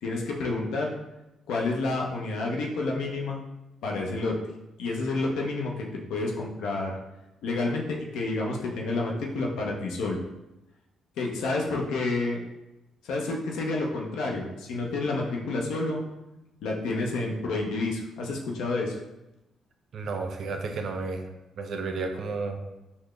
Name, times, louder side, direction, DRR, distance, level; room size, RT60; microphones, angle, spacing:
voice 1, 0.0-0.9 1.5-3.4 3.8-4.4 4.8-6.9 7.4-10.2 11.2-12.4 13.0-16.0 16.6-19.0, left 2 dB, 85° left, -1 dB, 0.6 m, -29 dB
voice 2, 19.9-21.3 21.6-22.6, right 4 dB, 60° right, 5 dB, 0.4 m, -32 dB
3.9 x 2.0 x 3.2 m, 0.95 s
cardioid pair, 90°, 0 cm